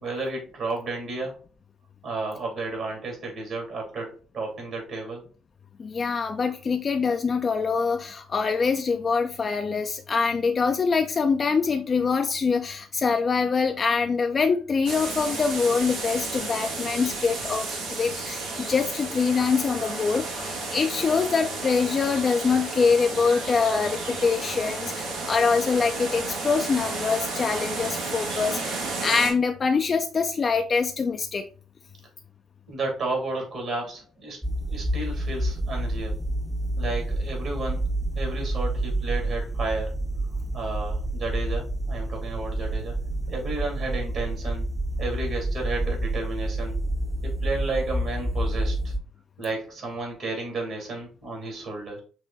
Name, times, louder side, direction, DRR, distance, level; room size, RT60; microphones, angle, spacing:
voice 1, 0.0-1.4 2.0-5.2 6.4-6.5 32.7-34.4 34.7-36.2 36.8-37.8 38.1-39.9 40.5-43.0 43.3-44.7 45.0-46.8 47.2-48.9 49.4-52.0, right 3 dB, 60° right, 0 dB, 2.4 m, -32 dB
voice 2, 5.8-31.4, left 5 dB, 45° left, 6 dB, 0.4 m, -24 dB
sound 1, 14.8-29.3, right 3 dB, 80° right, 1.3 m, -32 dB
sound 2, 34.4-49.0, right 1 dB, 10° right, 0.7 m, -28 dB
6.1 x 2.2 x 3.8 m, 0.39 s
hypercardioid pair, 55°, 0 cm